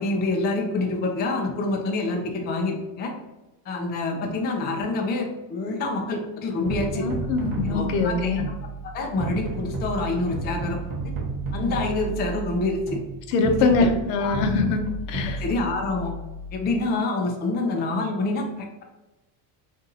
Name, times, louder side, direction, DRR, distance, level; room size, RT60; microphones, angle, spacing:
voice 1, 0.0-3.1 3.7-7.1 7.7-8.3 8.8-11.1 11.5-13.0 13.6-13.9 14.2-14.4 15.4-16.1 16.5-18.8, left 2 dB, 20° left, 2 dB, 0.4 m, -27 dB
sound 1, 6.6-16.8, right 3 dB, 45° right, 0.7 m, -32 dB
voice 2, 7.0-8.4 13.3-15.4, left 4 dB, 80° left, 6 dB, 0.7 m, -23 dB
2.7 x 2.6 x 3.8 m, 1.0 s
supercardioid pair, 125°, 49 cm